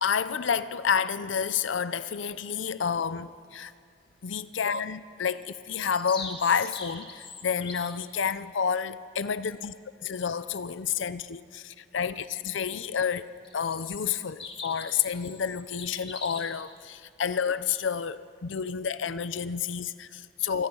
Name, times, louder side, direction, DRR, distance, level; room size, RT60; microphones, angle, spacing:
voice 1, 0.0-3.7 4.2-9.7 10.0-20.7, left 7 dB, 85° left, 14 dB, 0.6 m, -30 dB
sound 1, 5.4-7.9 13.4-16.6, left 4 dB, 25° left, 1.8 m, -41 dB
27.0 x 20.5 x 5.5 m, 2.2 s
head